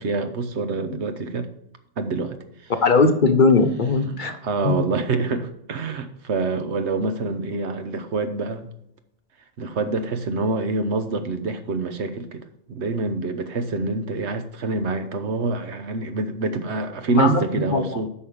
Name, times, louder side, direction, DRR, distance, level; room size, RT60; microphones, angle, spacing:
voice 1, 0.0-1.5 2.0-2.4 4.1-8.7 9.6-18.1, right 3 dB, 90° right, 8 dB, 1.3 m, -26 dB
voice 2, 2.8-4.3 4.6-4.9 17.1-17.4 17.7-18.0, left 3 dB, 50° left, 8 dB, 0.9 m, -19 dB
8.6 x 5.7 x 5.1 m, 0.76 s
omnidirectional pair, 1.1 m